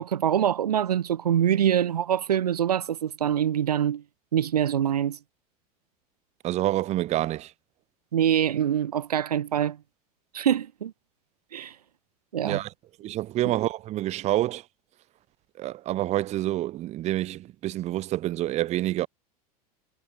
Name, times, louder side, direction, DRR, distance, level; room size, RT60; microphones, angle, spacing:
voice 1, 0.0-4.0 4.3-5.2 8.1-9.8 10.3-10.9 11.5-11.7 12.3-12.6, right 9 dB, 90° right, 0.5 m, -24 dB
voice 2, 6.4-7.5 12.4-12.7 13.0-14.7 15.6-19.1, right 15 dB, 35° right, 0.6 m, -27 dB
hypercardioid pair, 90°, 20 cm